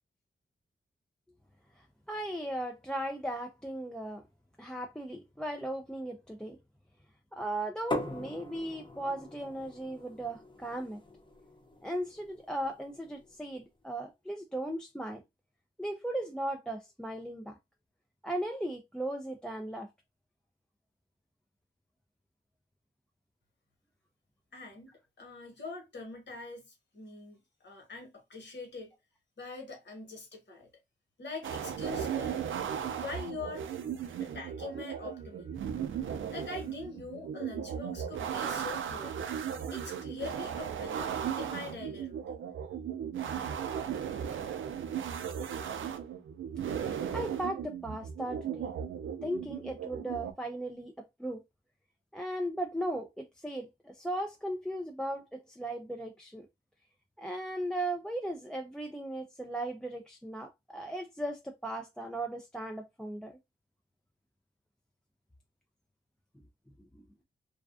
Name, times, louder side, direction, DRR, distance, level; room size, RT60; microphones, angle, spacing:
voice 1, 1.8-4.2 4.6-6.6 7.3-11.0 11.8-15.2 15.8-17.6 18.2-19.9 47.1-48.7 49.2-51.4 52.1-56.5 57.2-63.4, right 1 dB, 5° left, 0.4 m, -37 dB
sound 1, 7.9-13.6, left 1 dB, 25° left, 0.8 m, -42 dB
voice 2, 24.5-24.9 25.2-28.9 29.4-30.7 31.2-32.5 33.0-33.7 34.1-39.3 39.7-42.4, left 3 dB, 65° left, 1.2 m, -44 dB
sound 2, 31.4-50.3, right 8 dB, 80° right, 0.4 m, -36 dB
2.4 x 2.3 x 2.4 m
cardioid pair, 50°, 20 cm